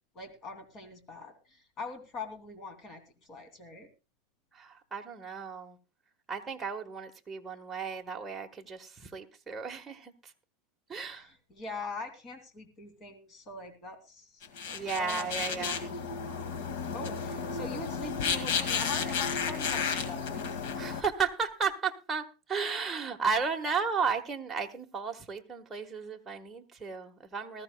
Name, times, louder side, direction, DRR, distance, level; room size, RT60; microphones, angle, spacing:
voice 1, 0.1-3.0 3.3-3.9 11.0-16.0 16.9-20.6, left 3 dB, 35° left, 2.9 m, -43 dB
voice 2, 4.5-5.8 6.3-10.1 10.9-11.3 14.7-15.8 20.7-27.6, right 5 dB, 10° right, 1.5 m, -34 dB
sound 1, 14.4-21.0, left 6 dB, 70° left, 2.1 m, -33 dB
19.5 x 14.0 x 2.3 m
supercardioid pair, 145°, 0 cm